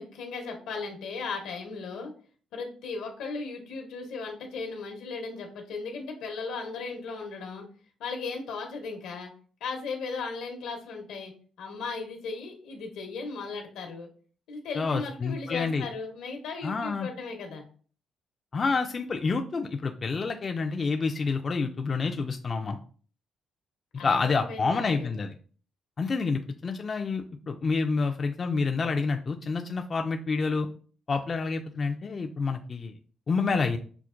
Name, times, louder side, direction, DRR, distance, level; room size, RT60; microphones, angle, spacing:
voice 1, 0.0-2.1 2.5-7.6 8.0-9.3 9.6-11.3 11.6-14.1 14.5-17.6 24.0-25.1, left 4 dB, 85° left, 2 dB, 0.9 m, -36 dB
voice 2, 14.8-15.9 16.6-17.1 18.5-22.8 24.0-25.3 26.0-30.7 31.1-32.9 33.3-33.8, left 4 dB, 40° left, 4 dB, 0.3 m, -28 dB
5.7 x 2.1 x 2.4 m, 0.42 s
cardioid pair, 90°, 0 cm